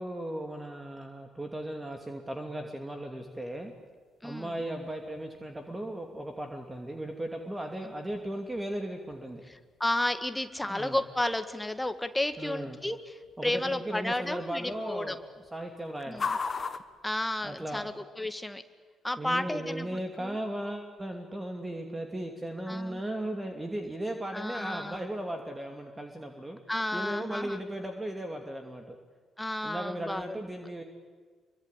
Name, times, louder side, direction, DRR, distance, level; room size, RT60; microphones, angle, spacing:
voice 1, 0.0-3.7 4.2-9.4 10.7-11.0 12.4-12.8 13.4-15.2 15.5-16.2 17.4-17.9 19.2-26.6 26.9-28.9 29.6-30.8, right 1 dB, 15° right, 4 dB, 2.7 m, -36 dB
sound 1, 3.2-18.0, left 4 dB, 40° left, 1.5 m, -44 dB
voice 2, 4.2-4.5 9.8-13.1 13.4-15.2 16.1-16.3 17.0-18.6 19.0-20.4 22.7-23.0 24.3-25.0 26.7-27.6 29.4-30.4, left 1 dB, 10° left, 9 dB, 1.8 m, -32 dB
25.5 x 24.0 x 8.4 m, 1.5 s
figure-of-eight pair, 45°, 0 cm